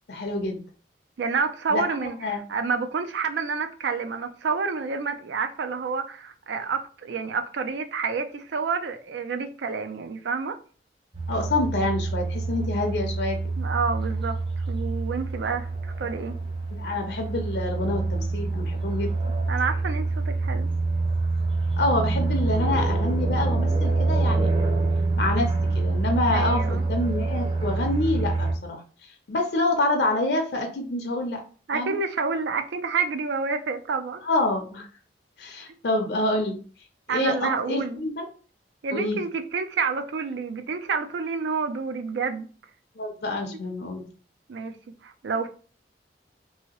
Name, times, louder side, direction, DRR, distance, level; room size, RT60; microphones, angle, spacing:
voice 1, 0.1-0.6 1.7-1.8 2.2-2.4 11.3-13.4 16.7-19.1 21.8-24.5 25.2-31.4 31.7-32.0 34.2-34.9 35.4-36.6 37.1-38.3 38.9-39.2 43.0-44.1, left 2 dB, 65° left, 0.5 m, -27 dB
voice 2, 1.2-10.6 13.6-14.4 14.7-16.4 19.5-20.7 26.3-26.8 31.7-34.2 37.1-38.0 38.8-42.5 43.5-43.6 44.5-44.8 45.0-45.5, right 5 dB, 75° right, 0.4 m, -29 dB
sound 1, 11.1-28.5, right 3 dB, 30° right, 0.6 m, -26 dB
2.7 x 2.7 x 2.9 m
head